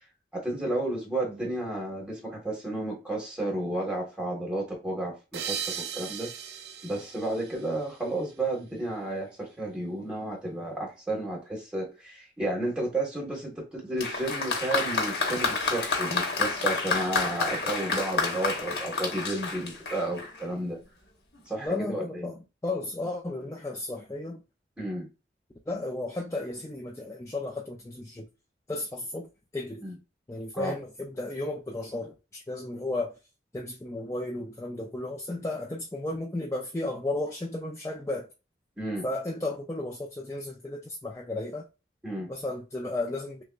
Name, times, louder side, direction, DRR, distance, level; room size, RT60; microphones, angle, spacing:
voice 1, 0.3-6.3 6.8-20.8 21.5-22.3 24.8-25.1 29.8-29.9 30.5-30.7 38.8-39.1 42.0-42.3, right 1 dB, 5° right, 1.4 m, -32 dB
sound 1, 5.3-8.4, right 8 dB, 70° right, 0.6 m, -38 dB
Applause, 14.0-20.5 21.4-21.5, left 4 dB, 70° left, 1.1 m, -29 dB
voice 2, 21.6-24.4 25.7-28.3 28.7-29.8 30.3-33.1 33.5-38.3 39.0-41.7 42.3-43.4, left 2 dB, 15° left, 0.4 m, -34 dB
6.3 x 2.2 x 2.4 m
head